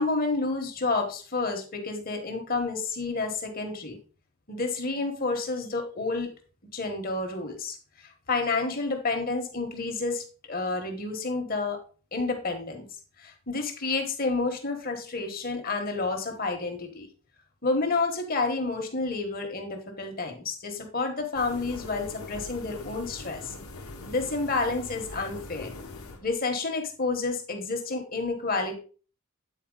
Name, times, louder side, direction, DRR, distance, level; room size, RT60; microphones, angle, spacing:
voice 1, 0.0-4.0 4.5-6.3 6.7-7.8 8.3-11.8 12.1-12.8 13.2-17.1 17.6-23.5 24.1-25.7 26.2-28.8, left 3 dB, 40° left, 4 dB, 1.3 m, -29 dB
sound 1, 21.3-26.3, left 2 dB, 90° left, 1.1 m, -42 dB
8.5 x 4.3 x 3.9 m, 0.38 s
head